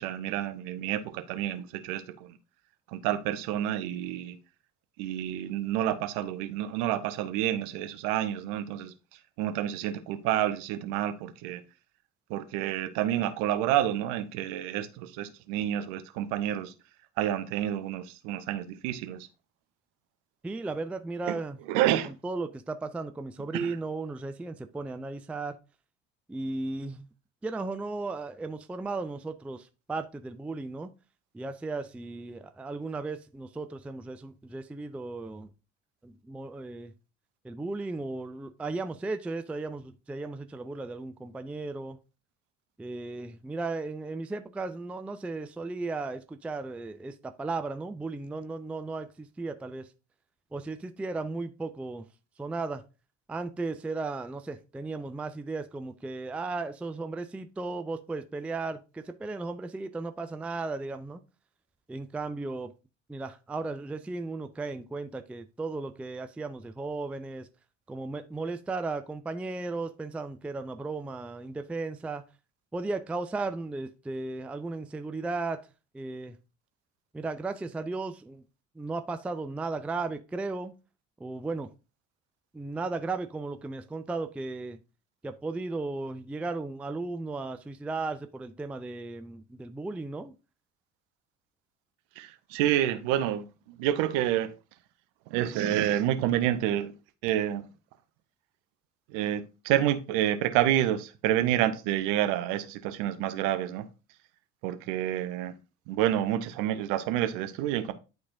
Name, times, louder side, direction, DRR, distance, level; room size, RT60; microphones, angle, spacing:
voice 1, 0.0-2.4 2.9-4.4 5.0-8.9 9.4-11.6 12.3-16.7 17.2-19.3 21.3-21.4 21.7-22.1 23.5-23.8 92.2-94.5 95.3-96.9 97.2-97.6 99.1-103.9 104.6-105.5 105.9-107.9, right 12 dB, 55° right, 0.8 m, -29 dB
voice 2, 20.4-21.6 22.1-25.6 26.3-27.1 27.4-30.9 31.3-35.5 36.0-36.9 37.4-42.0 42.8-49.9 50.5-52.1 52.4-52.8 53.3-61.2 61.9-62.7 63.1-67.5 67.9-72.2 72.7-75.7 75.9-76.4 77.1-78.4 78.8-80.7 81.2-81.7 82.5-84.8 85.2-90.3, right 3 dB, 5° right, 0.4 m, -35 dB
11.0 x 3.8 x 2.6 m
figure-of-eight pair, 60°, 36 cm